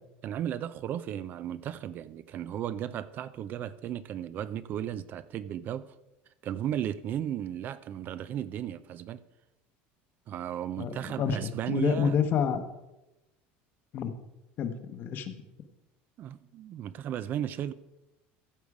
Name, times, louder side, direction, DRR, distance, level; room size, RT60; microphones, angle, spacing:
voice 1, 0.2-5.9 6.4-9.2 10.3-12.2 16.2-17.7, right 10 dB, 35° right, 0.4 m, -35 dB
voice 2, 10.8-12.6 13.9-14.1 14.6-15.3, left 7 dB, 40° left, 1.0 m, -29 dB
14.5 x 6.5 x 4.8 m
cardioid pair, 155°, 5 cm